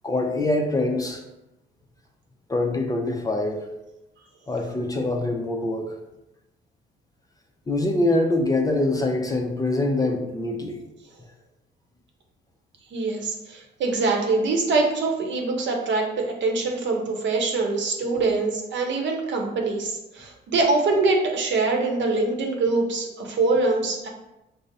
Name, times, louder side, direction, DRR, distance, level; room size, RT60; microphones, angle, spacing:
voice 1, 0.0-1.2 2.5-3.6 4.5-5.9 7.7-10.8, left 2 dB, 20° left, 2 dB, 0.4 m, -24 dB
voice 2, 12.9-24.1, right 3 dB, 65° right, 1 dB, 0.7 m, -24 dB
5.1 x 2.0 x 2.6 m, 0.94 s
cardioid pair, 90°, 20 cm